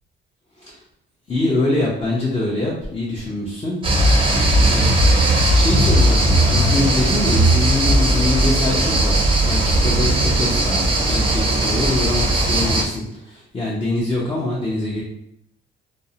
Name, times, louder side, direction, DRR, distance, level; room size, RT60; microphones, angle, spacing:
voice 1, 1.3-3.8 4.6-15.0, left 2 dB, 25° left, -5 dB, 0.6 m, -24 dB
sound 1, 3.8-12.8, right 1 dB, 25° right, 0.5 m, -17 dB
2.5 x 2.0 x 2.7 m, 0.77 s
cardioid pair, 90°, 20 cm